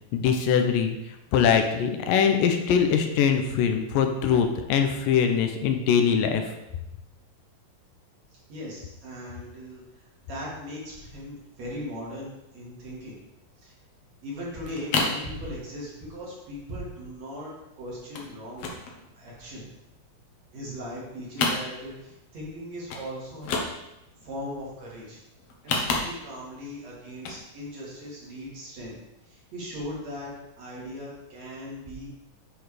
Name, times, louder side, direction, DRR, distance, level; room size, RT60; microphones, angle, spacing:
voice 1, 0.1-1.0 1.3-6.4, left 7 dB, 90° left, 5 dB, 2.5 m, -22 dB
voice 2, 8.5-13.2 13.6-13.7 14.2-18.7 19.1-19.7 20.5-23.5 24.1-25.2 25.6-29.0 29.2-32.1, equal, 55° right, -6 dB, 3.4 m, -38 dB
sound 1, 14.1-14.2 14.4-15.3 15.6-16.0 16.3-16.4 16.6-16.8 17.2-17.6 18.1-18.3 18.6-19.8 20.2-21.0 21.3-22.1 22.5-22.6 22.9-23.1 23.3-24.1 25.4-26.5 27.1-27.4 27.8-27.9, left 3 dB, 65° left, 1.7 m, -30 dB
9.7 x 4.0 x 4.9 m, 0.91 s
omnidirectional pair, 3.8 m